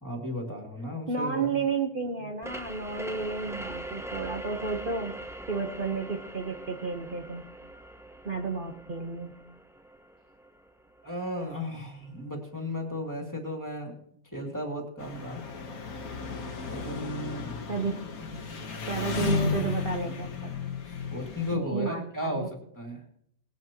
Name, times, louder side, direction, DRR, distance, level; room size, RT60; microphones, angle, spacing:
voice 1, 0.0-1.6 11.0-13.9 14.3-15.4 16.7-17.5 20.0-20.6 21.1-22.5 22.8-23.0, left 1 dB, 15° left, 0 dB, 2.6 m, -35 dB
voice 2, 1.1-5.1 5.5-7.4 8.2-9.3 17.7-18.0 18.9-20.5 21.5-22.5, right 4 dB, 40° right, 1 dB, 1.2 m, -32 dB
sound 1, 2.4-11.8, right 1 dB, 5° right, 0.5 m, -42 dB
Engine, 15.0-21.5, left 5 dB, 80° left, 1.8 m, -34 dB
19.5 x 11.0 x 3.0 m, 0.70 s
omnidirectional pair, 1.5 m